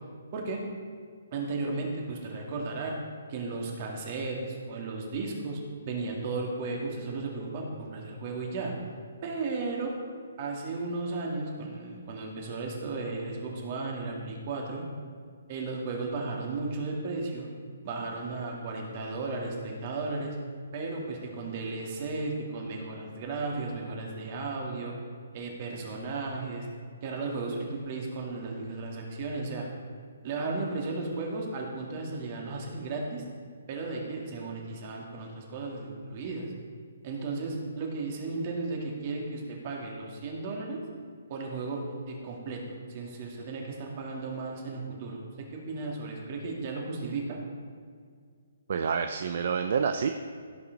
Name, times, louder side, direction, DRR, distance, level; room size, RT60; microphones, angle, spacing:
voice 1, 0.3-0.6 1.3-3.0 3.3-5.6 5.9-8.7 9.2-9.9 10.4-14.8 15.5-17.5 17.8-20.4 20.7-24.9 25.3-26.7 27.0-29.7 30.2-33.2 33.7-36.5 37.0-40.8 41.3-47.4, right 3 dB, 40° right, 0 dB, 2.3 m, -35 dB
voice 2, 48.7-50.1, right 6 dB, 55° right, 7 dB, 0.5 m, -28 dB
16.5 x 5.8 x 4.1 m, 2.1 s
hypercardioid pair, 150°, 0 cm